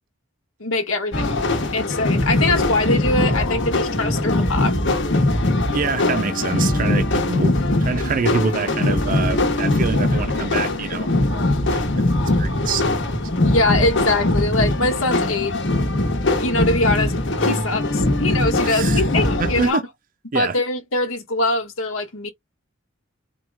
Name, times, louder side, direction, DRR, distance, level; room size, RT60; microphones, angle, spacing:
voice 1, 0.6-1.4 1.7-4.8 13.4-15.6 16.4-17.1 17.4-19.8 20.3-22.3, left 2 dB, 80° left, 1.3 m, -22 dB
sound 1, 1.1-19.7, left 2 dB, 60° left, 1.2 m, -21 dB
voice 2, 5.7-7.5 7.8-11.4 11.7-11.8 12.4-12.8 18.6-19.0 19.4-19.8 20.3-20.6, right 5 dB, 40° right, 0.4 m, -25 dB
4.5 x 2.3 x 3.5 m
head